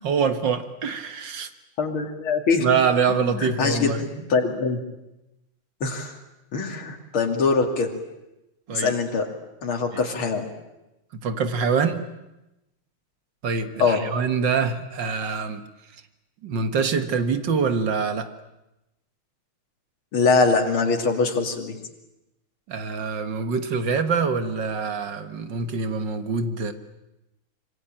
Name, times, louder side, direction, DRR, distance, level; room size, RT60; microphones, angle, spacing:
voice 1, 0.0-1.5 2.6-4.0 8.7-8.9 9.9-10.0 11.1-12.0 13.4-15.7 16.4-18.3 22.7-26.7, right 5 dB, 60° right, 9 dB, 2.1 m, -25 dB
voice 2, 1.8-2.7 3.1-4.8 5.8-6.2 6.5-7.9 8.7-9.3 9.6-10.4 13.8-14.0 20.1-21.8, left 4 dB, 80° left, 3 dB, 3.5 m, -23 dB
26.0 x 24.0 x 9.0 m, 0.94 s
omnidirectional pair, 2.3 m